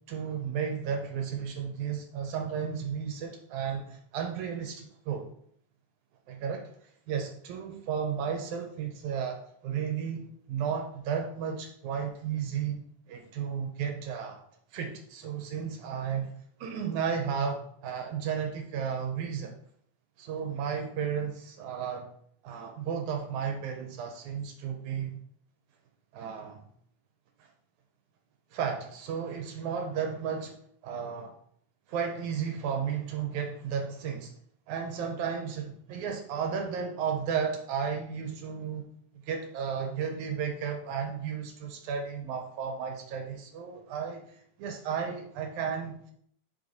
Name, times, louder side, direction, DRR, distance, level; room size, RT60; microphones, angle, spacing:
voice 1, 0.0-5.3 6.3-6.7 7.1-14.4 14.7-16.3 16.6-19.5 20.2-22.1 22.4-25.2 26.1-26.7 27.4-27.5 28.5-30.6 30.8-31.3 31.9-34.3 34.7-38.9 39.2-46.1, right 7 dB, 75° right, 3 dB, 2.0 m, -33 dB
5.2 x 4.0 x 4.8 m, 0.66 s
omnidirectional pair, 3.5 m